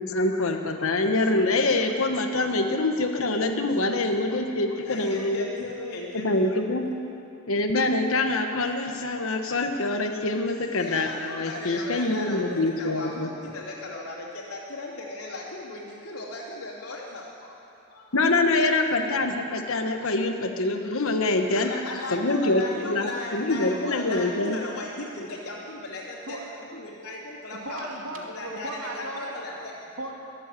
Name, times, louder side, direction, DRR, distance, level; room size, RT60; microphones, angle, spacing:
voice 1, 0.0-5.5 6.1-6.8 7.5-13.3 18.1-21.7 22.1-24.6, left 2 dB, 65° left, 5 dB, 1.2 m, -25 dB
voice 2, 4.9-6.6 10.8-17.6 17.9-18.1 21.5-26.4 26.7-27.9 28.3-29.5, left 2 dB, 85° left, -7 dB, 2.9 m, -37 dB
voice 3, 26.2-26.8 27.5-30.1, right 1 dB, 70° right, 0 dB, 2.2 m, -37 dB
22.5 x 7.9 x 7.6 m, 2.8 s
head